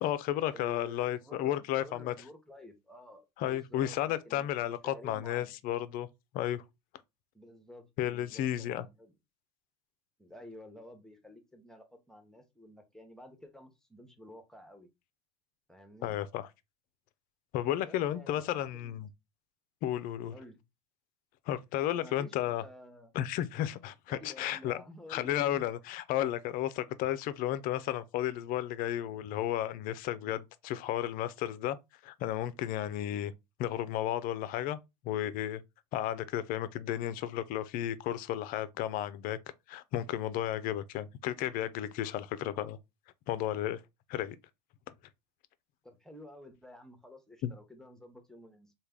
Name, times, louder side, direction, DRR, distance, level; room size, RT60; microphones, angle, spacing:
voice 1, 0.0-2.1 3.4-6.1 6.3-6.6 8.0-8.8 16.0-16.5 17.5-19.1 19.8-20.3 21.5-22.6 23.1-24.8 25.1-31.8 32.0-33.3 33.6-34.8 35.0-35.6 35.9-39.4 39.7-42.8 43.3-43.8 44.1-44.4 47.4-47.5, left 12 dB, 45° left, 0.4 m, -33 dB
voice 2, 0.5-5.5 7.3-9.1 10.2-14.9 15.7-16.2 17.8-18.9 20.3-20.6 21.9-23.1 24.1-25.6 45.8-48.7, left 1 dB, ahead, 0.8 m, -52 dB
3.2 x 2.3 x 3.5 m
hypercardioid pair, 85°, 21 cm